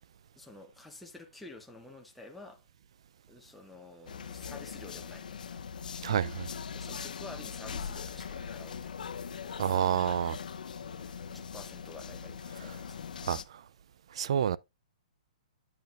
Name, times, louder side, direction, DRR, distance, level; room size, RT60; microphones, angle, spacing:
voice 1, 0.4-2.6 3.3-5.6 6.7-9.1 10.8-13.0, left 2 dB, ahead, 0.6 m, -50 dB
sound 1, 4.1-13.4, left 6 dB, 75° left, 0.7 m, -41 dB
voice 2, 6.0-6.5 9.6-10.4 13.3-13.4 14.2-14.6, right 9 dB, 40° right, 0.3 m, -28 dB
8.9 x 7.8 x 2.4 m
hypercardioid pair, 180°, 4 cm